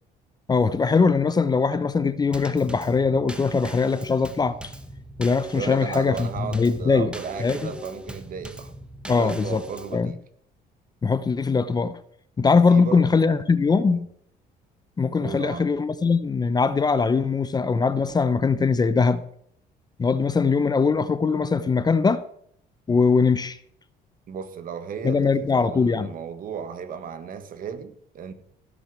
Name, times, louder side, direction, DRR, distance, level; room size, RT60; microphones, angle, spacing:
voice 1, 0.5-4.6 5.2-7.1 7.4-7.7 9.1-9.6 9.9-10.1 11.0-12.0 12.4-14.1 15.0-19.2 20.0-22.2 22.9-23.6 25.0-26.1, left 4 dB, 25° left, 0.7 m, -21 dB
Drum kit / Snare drum / Bass drum, 2.3-10.0, equal, 5° right, 1.3 m, -41 dB
voice 2, 5.5-8.7 9.1-10.2 12.7-13.2 13.9-14.1 15.2-15.7 24.3-28.3, right 7 dB, 55° right, 1.6 m, -35 dB
16.0 x 6.3 x 6.3 m
cardioid pair, 110°, 17 cm